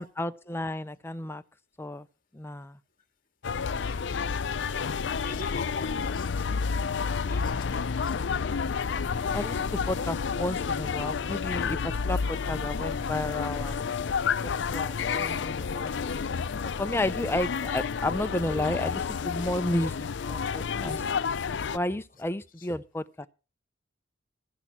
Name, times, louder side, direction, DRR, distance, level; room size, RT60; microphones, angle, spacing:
voice 1, 0.0-1.4 1.8-2.1 2.3-2.8 9.3-11.8 12.0-13.8 14.4-16.1 16.8-21.0 21.7-23.3, left 1 dB, 15° left, 0.5 m, -32 dB
sound 1, 3.4-21.8, left 5 dB, 65° left, 0.5 m, -30 dB
voice 2, 4.8-6.4 7.2-8.6 22.6-22.7, left 4 dB, 45° left, 2.0 m, -43 dB
15.5 x 5.6 x 6.1 m
head